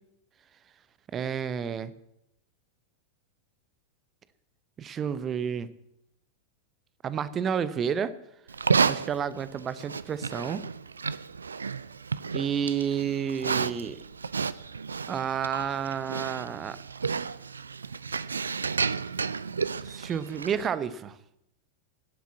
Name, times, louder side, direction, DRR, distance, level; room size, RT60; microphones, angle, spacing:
voice 1, 1.1-1.9 4.8-5.7 7.0-8.1 8.8-10.6 12.3-14.0 15.1-16.8 19.8-21.2, right 7 dB, 25° right, 15 dB, 0.8 m, -30 dB
Livestock farm animals working animals, 8.5-20.7, right 5 dB, 75° right, 0.4 m, -31 dB
12.5 x 8.3 x 8.5 m, 0.82 s
figure-of-eight pair, 90°, 0 cm